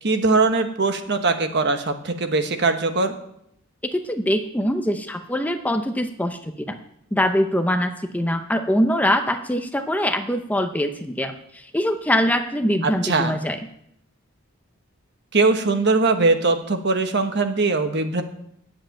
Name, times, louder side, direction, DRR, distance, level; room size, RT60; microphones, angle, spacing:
voice 1, 0.0-3.1 12.8-13.4 15.3-18.2, right 3 dB, 55° right, 7 dB, 1.2 m, -21 dB
voice 2, 3.9-6.8 7.1-13.6, equal, 5° left, 7 dB, 0.6 m, -23 dB
9.3 x 7.7 x 8.8 m, 0.75 s
head